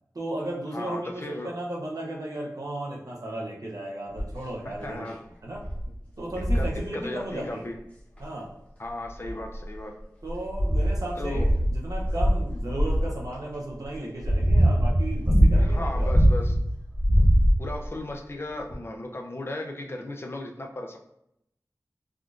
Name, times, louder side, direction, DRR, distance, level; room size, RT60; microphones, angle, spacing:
voice 1, 0.1-5.1 5.4-5.6 6.2-7.7 8.2-8.5 10.2-16.1, right 1 dB, 70° right, -3 dB, 0.7 m, -35 dB
voice 2, 0.7-1.5 4.6-5.2 6.5-6.7 6.9-7.8 8.8-9.9 11.2-11.5 15.5-16.5 17.6-21.0, left 1 dB, 40° left, 2 dB, 0.4 m, -35 dB
sound 1, 4.2-4.5 5.1-5.2 5.6-5.8 6.3-6.8 8.2-8.3 9.1-9.8 10.3-13.1 13.8-16.6 16.9-17.9 18.7-18.8, equal, 20° left, 1.0 m, -22 dB
3.5 x 2.4 x 2.4 m, 0.78 s
wide cardioid pair, 55°, 6 cm